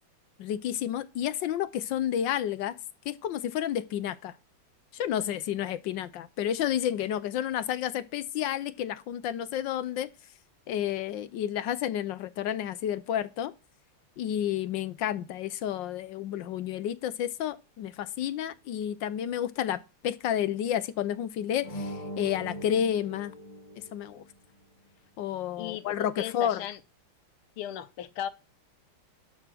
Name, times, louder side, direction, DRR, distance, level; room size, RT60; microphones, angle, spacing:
voice 1, 0.4-2.8 3.1-4.3 4.9-10.1 10.7-13.5 14.2-23.3 23.9-24.2 25.2-26.6, left 10 dB, 70° left, 1.2 m, -31 dB
sound 1, 21.6-24.3, equal, 20° left, 2.2 m, -40 dB
voice 2, 25.6-26.8 27.6-28.3, left 11 dB, 85° left, 1.7 m, -36 dB
11.5 x 5.4 x 6.2 m
omnidirectional pair, 2.3 m